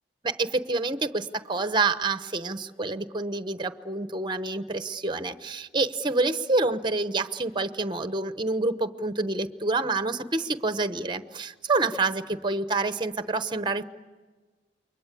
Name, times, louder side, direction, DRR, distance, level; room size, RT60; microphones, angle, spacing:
voice 1, 0.2-13.8, right 3 dB, 25° right, 11 dB, 1.0 m, -27 dB
29.0 x 23.5 x 8.3 m, 1.3 s
head